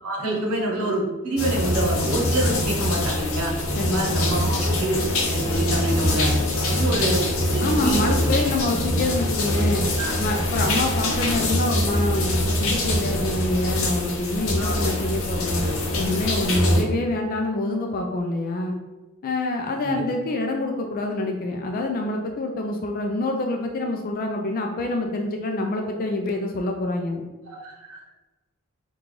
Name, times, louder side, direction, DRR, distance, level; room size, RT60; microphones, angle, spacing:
voice 1, 0.0-3.6 3.9-5.0 5.3-6.3 6.7-7.2 7.5-8.4 10.0-10.2 14.6-14.7 16.5-16.8 19.8-20.0 27.6-28.1, right 1 dB, 90° right, -1 dB, 0.8 m, -26 dB
sound 1, 1.4-16.8, left 1 dB, 70° left, 0.7 m, -24 dB
voice 2, 3.8-4.2 7.6-9.8 10.2-15.6 16.0-18.8 19.2-27.2, left 2 dB, 40° left, 3 dB, 0.3 m, -26 dB
3.8 x 2.3 x 3.1 m, 1.2 s
head